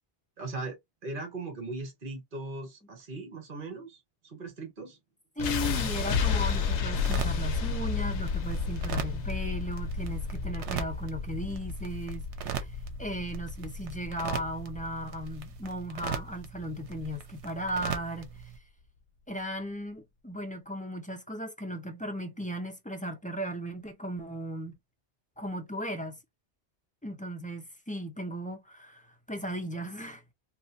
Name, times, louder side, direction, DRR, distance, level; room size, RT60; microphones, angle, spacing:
voice 1, 0.4-5.0, right 3 dB, 50° right, 1.3 m, -39 dB
sound 1, 5.4-17.4, left 5 dB, 80° left, 0.9 m, -32 dB
voice 2, 5.4-18.5 19.3-24.8 25.4-26.2 27.0-30.2, equal, 10° left, 0.4 m, -36 dB
sound 2, 5.9-18.6, right 7 dB, 85° right, 0.9 m, -40 dB
3.0 x 2.5 x 2.6 m
omnidirectional pair, 1.1 m